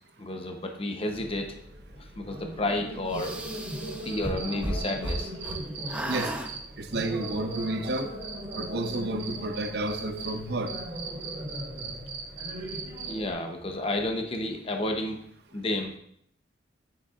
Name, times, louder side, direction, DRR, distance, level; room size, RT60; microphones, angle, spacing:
voice 1, 0.2-1.6 2.0-3.3 4.0-5.3 13.1-15.2 15.5-15.9, left 1 dB, 30° left, 4 dB, 0.8 m, -31 dB
sound 1, 1.1-13.3, equal, 35° right, 2.9 m, -39 dB
sound 2, 3.1-5.6 5.9-6.5, right 1 dB, 5° right, 0.7 m, -34 dB
Cricket, 3.8-6.6 6.9-10.3 10.7-13.1, right 7 dB, 85° right, 1.7 m, -38 dB
voice 2, 6.8-8.1 8.5-10.7, right 2 dB, 60° right, 7 dB, 0.8 m, -31 dB
9.4 x 7.0 x 2.5 m, 0.67 s
head